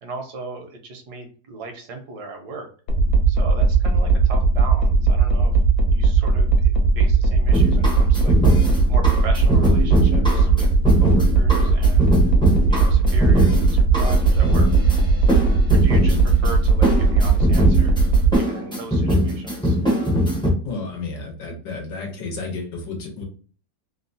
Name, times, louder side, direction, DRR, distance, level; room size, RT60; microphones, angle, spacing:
voice 1, 0.0-2.7 3.3-5.5 5.9-8.4 8.9-10.7 11.0-12.2 12.7-14.7 15.7-18.0 18.3-19.8, right 3 dB, 70° right, 4 dB, 1.3 m, -37 dB
sound 1, 2.9-18.4, right 4 dB, 70° left, 1.2 m, -17 dB
sound 2, 7.5-20.5, equal, 5° left, 0.3 m, -22 dB
voice 2, 20.6-23.2, left 3 dB, 90° left, 1 dB, 1.6 m, -31 dB
3.7 x 2.2 x 2.6 m, 0.40 s
omnidirectional pair, 1.9 m